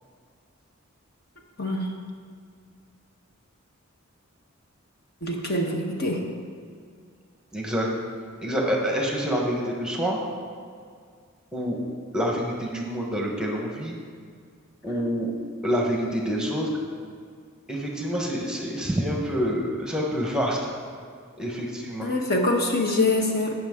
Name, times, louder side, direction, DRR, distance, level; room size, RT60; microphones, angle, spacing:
voice 1, 1.6-1.9 5.2-6.2 22.0-23.5, left 2 dB, 45° left, 1 dB, 1.1 m, -24 dB
voice 2, 7.5-7.9 8.4-10.2 11.5-11.8 12.1-14.0 14.8-15.3 15.6-16.7 17.7-20.6 21.4-22.1, equal, 5° right, -1 dB, 1.1 m, -27 dB
17.0 x 6.1 x 3.7 m, 2.1 s
head